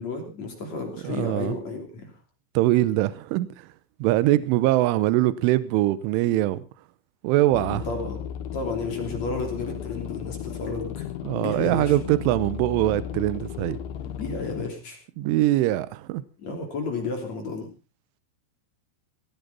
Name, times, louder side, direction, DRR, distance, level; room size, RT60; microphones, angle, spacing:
voice 1, 0.0-2.1 7.7-8.2 8.5-11.1 11.4-11.9 14.2-15.0 16.4-17.7, left 3 dB, 40° left, 4 dB, 3.7 m, -32 dB
voice 2, 1.0-1.6 2.5-3.7 4.0-6.6 7.2-7.9 11.2-13.8 15.2-16.2, right 16 dB, 75° right, 15 dB, 3.2 m, -22 dB
sound 1, 7.5-14.7, left 9 dB, 75° left, 3.2 m, -35 dB
17.5 x 15.5 x 4.0 m, 0.32 s
omnidirectional pair, 6.0 m